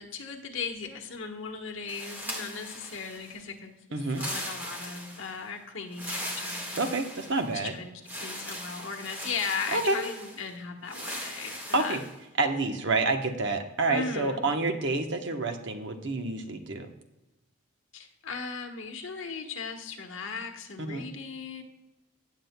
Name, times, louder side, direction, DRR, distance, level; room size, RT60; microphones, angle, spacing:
voice 1, 0.0-6.9 7.5-12.0 13.9-14.4 17.9-21.6, left 5 dB, 70° left, 4 dB, 1.3 m, -37 dB
sound 1, 1.9-3.4 4.0-5.4 5.9-7.6 8.1-10.4 10.9-12.1, equal, 10° right, 1.6 m, -39 dB
voice 2, 3.9-4.2 6.7-7.7 9.7-10.0 11.7-12.0 12.4-16.9 20.8-21.1, right 3 dB, 60° right, 5 dB, 1.0 m, -28 dB
17.0 x 7.5 x 2.2 m, 0.97 s
head